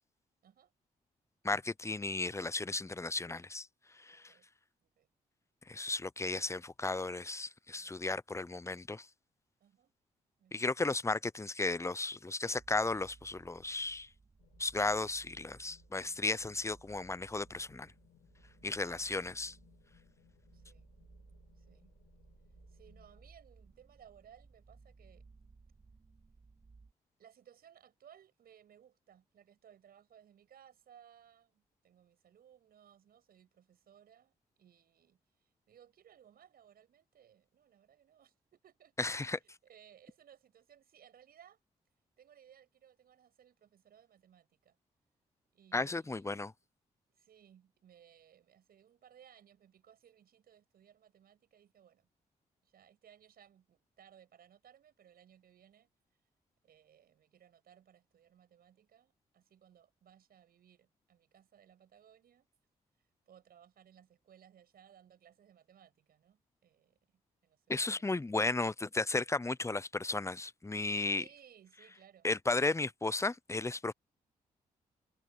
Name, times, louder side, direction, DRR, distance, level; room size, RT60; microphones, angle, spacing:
voice 1, 1.4-3.7 4.0-4.3 5.7-9.1 10.5-14.1 14.6-17.9 18.6-19.5 39.0-39.4 45.7-46.5 67.7-71.2 72.2-73.9, left 3 dB, 20° left, 0.8 m, -34 dB
voice 2, 4.1-4.5 4.8-5.1 7.7-7.9 9.6-9.9 10.4-10.7 18.8-19.1 20.5-21.0 21.6-21.9 22.7-25.2 27.2-41.6 42.2-44.8 45.5-46.5 47.1-52.1 52.6-55.9 56.6-62.5 63.3-68.1 71.1-72.3, right 9 dB, 75° right, 6.9 m, -62 dB
sound 1, 12.5-26.9, right 4 dB, 40° right, 3.4 m, -61 dB
sound 2, 14.4-23.3, left 12 dB, 85° left, 5.1 m, -68 dB
supercardioid pair, 50°, 16 cm